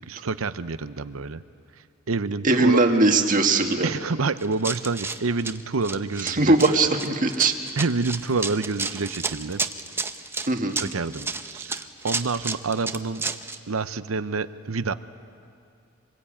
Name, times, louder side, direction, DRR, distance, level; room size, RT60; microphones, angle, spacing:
voice 1, 0.1-1.4 2.1-2.9 3.8-6.8 7.4-7.5 7.8-9.6 10.8-13.2 13.7-14.9, right 4 dB, 80° right, 13 dB, 0.8 m, -28 dB
voice 2, 2.4-3.9 6.2-7.6 10.5-10.8, right 2 dB, 40° right, 4 dB, 1.7 m, -20 dB
Run, 4.4-13.6, right 3 dB, 10° right, 0.8 m, -31 dB
26.0 x 20.5 x 8.8 m, 2.4 s
head